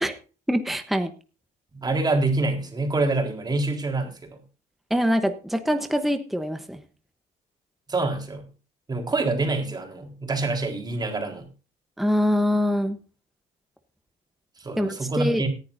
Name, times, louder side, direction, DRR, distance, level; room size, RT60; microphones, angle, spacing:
voice 1, 0.5-1.1 4.9-6.8 12.0-13.0 14.7-15.4, equal, ahead, 8 dB, 1.0 m, -24 dB
voice 2, 1.7-4.4 7.9-8.4 8.9-11.5 14.6-15.5, right 2 dB, 25° right, 4 dB, 3.8 m, -26 dB
18.0 x 10.5 x 2.7 m, 0.34 s
cardioid pair, 110°, 17 cm